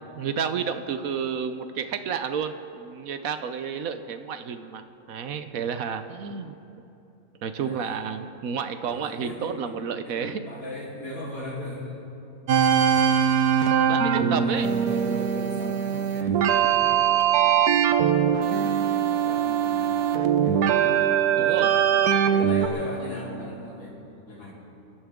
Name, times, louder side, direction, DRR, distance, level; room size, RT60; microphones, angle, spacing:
voice 1, 0.1-6.6 7.4-10.4 13.9-14.7 21.3-21.7 22.3-22.5, right 7 dB, 70° right, 9 dB, 1.1 m, -31 dB
voice 2, 7.5-8.3 8.8-9.7 10.0-12.0 14.4-16.9 17.3-17.7 18.3-18.6 19.1-20.8 21.2-21.9 22.3-24.5, left 1 dB, 65° left, -6 dB, 4.5 m, -39 dB
sound 1, 12.5-22.7, right 8 dB, 90° right, 1.4 m, -22 dB
27.0 x 12.5 x 3.7 m, 2.8 s
omnidirectional pair, 1.6 m